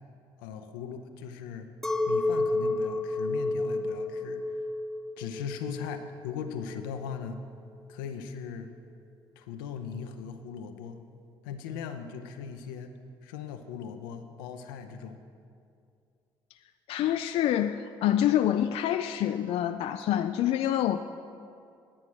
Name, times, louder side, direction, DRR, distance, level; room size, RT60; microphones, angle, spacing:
voice 1, 0.4-1.7 2.1-4.7 5.2-7.4 7.9-8.7 9.4-11.0 11.4-13.0 13.2-15.2, left 7 dB, 90° left, 7 dB, 0.7 m, -39 dB
Chink clink, 1.8-7.3, left 2 dB, ahead, 0.8 m, -31 dB
voice 2, 16.9-21.0, left 11 dB, 65° left, 9 dB, 0.4 m, -26 dB
10.0 x 8.7 x 6.2 m, 2.4 s
supercardioid pair, 65°, 11 cm